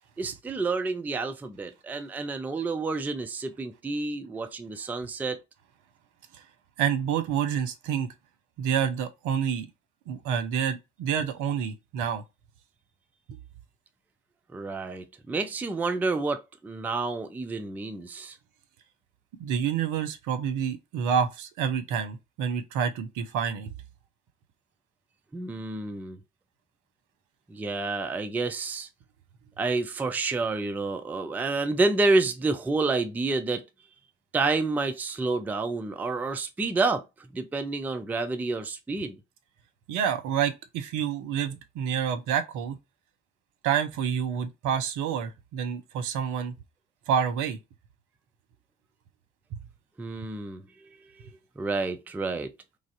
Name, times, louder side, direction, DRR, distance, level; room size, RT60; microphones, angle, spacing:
voice 1, 0.2-5.4 14.5-18.4 25.3-26.2 27.5-28.9 29.6-33.6 34.3-37.0 37.3-39.2 50.0-50.9 51.2-51.3 51.6-52.5, right 3 dB, 5° right, 0.3 m, -29 dB
voice 2, 6.8-8.1 8.6-9.7 10.1-12.2 13.3-13.4 19.4-23.7 39.9-42.8 43.6-46.5 47.1-47.6, right 8 dB, 55° right, 0.7 m, -28 dB
3.2 x 2.5 x 2.4 m
figure-of-eight pair, 45°, 36 cm